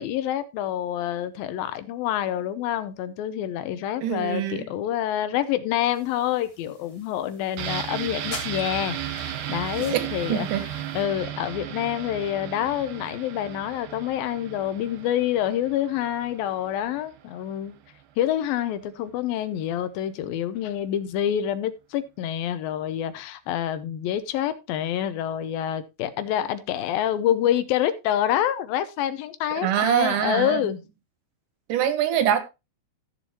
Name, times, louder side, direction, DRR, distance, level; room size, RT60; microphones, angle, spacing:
voice 1, 0.0-10.5 10.9-17.8 18.2-30.8, left 11 dB, 80° left, 2.6 m, -27 dB
voice 2, 4.0-4.7 9.8-10.6 29.5-30.7 31.7-32.4, right 10 dB, 70° right, 2.6 m, -24 dB
sound 1, 5.9-11.0, left 1 dB, 35° left, 0.5 m, -44 dB
sound 2, 7.6-17.2 17.5-17.6, right 11 dB, 85° right, 2.8 m, -35 dB
15.0 x 7.1 x 2.9 m
omnidirectional pair, 4.2 m